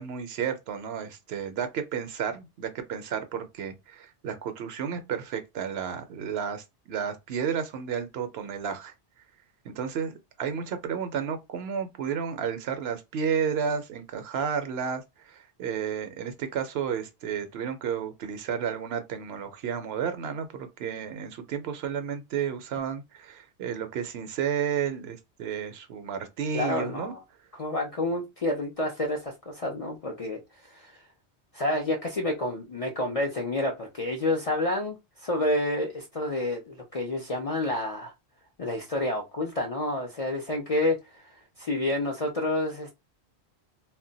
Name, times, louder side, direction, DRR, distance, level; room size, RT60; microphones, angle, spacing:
voice 1, 0.0-8.9 9.6-27.1, right 7 dB, 70° right, 0.8 m, -32 dB
voice 2, 26.5-27.2 27.5-31.0 31.5-38.1 38.6-42.9, left 1 dB, 50° left, 0.4 m, -29 dB
2.2 x 2.1 x 3.8 m
omnidirectional pair, 1.1 m